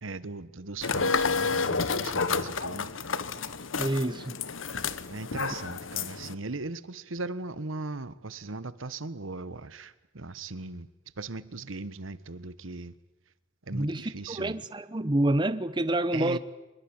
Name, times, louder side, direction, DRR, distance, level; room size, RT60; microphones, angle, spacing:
voice 1, 0.0-2.9 5.1-10.9 11.2-12.9 13.7-14.5 16.1-16.4, right 3 dB, 90° right, 1.3 m, -38 dB
sound 1, 0.8-6.3, left 4 dB, 85° left, 1.2 m, -30 dB
voice 2, 3.8-4.4 13.7-16.4, right 1 dB, 25° right, 0.8 m, -28 dB
24.5 x 21.5 x 8.9 m
head